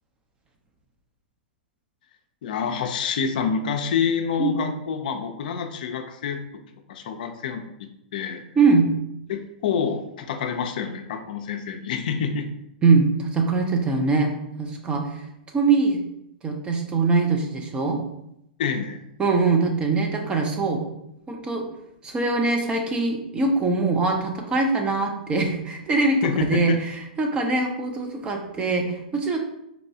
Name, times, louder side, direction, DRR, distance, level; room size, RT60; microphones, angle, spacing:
voice 1, 2.4-6.4 6.9-8.4 9.3-12.5 18.6-19.0 26.2-26.8, left 6 dB, 65° left, 5 dB, 0.4 m, -27 dB
voice 2, 8.6-8.9 12.8-15.2 15.5-16.0 16.4-18.0 19.2-20.8 21.3-21.6 22.0-29.4, right 3 dB, 20° right, 3 dB, 0.6 m, -22 dB
4.1 x 2.2 x 2.7 m, 0.81 s
hypercardioid pair, 120°, 5 cm